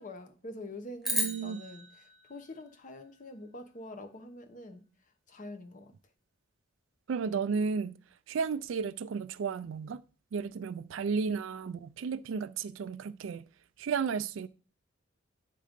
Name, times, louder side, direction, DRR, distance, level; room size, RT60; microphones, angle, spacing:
voice 1, 0.0-1.9 2.3-4.8 5.3-5.9, left 1 dB, 40° left, 0.8 m, -45 dB
sound 1, 1.0-3.5, equal, ahead, 1.2 m, -36 dB
voice 2, 1.1-1.6 7.1-8.0 8.3-10.0 10.3-13.4 13.8-14.5, right 5 dB, 75° right, 0.4 m, -33 dB
7.6 x 3.7 x 5.1 m
head